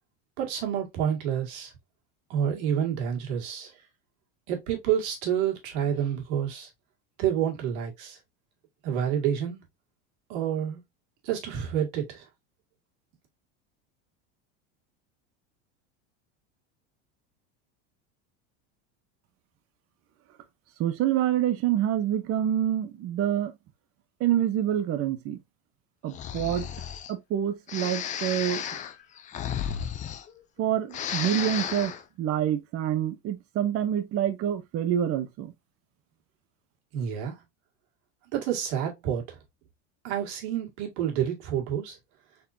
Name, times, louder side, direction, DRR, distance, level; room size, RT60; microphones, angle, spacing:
voice 1, 0.4-1.7 2.3-3.7 4.5-6.7 7.2-8.2 8.8-9.6 10.3-10.8 11.2-12.2 36.9-37.4 38.3-39.4 40.0-42.0, right 9 dB, 75° right, 2.0 m, -28 dB
voice 2, 20.8-23.5 24.2-25.4 26.0-26.7 27.1-28.6 30.6-35.5, right 10 dB, 40° right, 0.8 m, -27 dB
Breathing, 26.1-27.1 27.7-30.6 30.9-32.0, left 9 dB, 25° left, 0.4 m, -33 dB
4.2 x 3.8 x 2.6 m
supercardioid pair, 140°, 34 cm